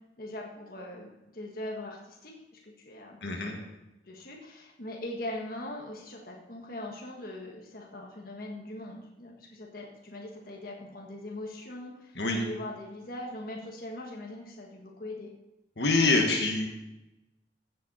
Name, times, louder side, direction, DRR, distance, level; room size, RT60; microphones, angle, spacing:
voice 1, 0.2-3.7 4.1-15.3, left 1 dB, 50° left, -1 dB, 1.6 m, -41 dB
voice 2, 3.2-3.6 12.2-12.4 15.8-16.7, left 3 dB, 70° left, 2 dB, 1.6 m, -25 dB
15.0 x 7.5 x 4.3 m, 0.96 s
head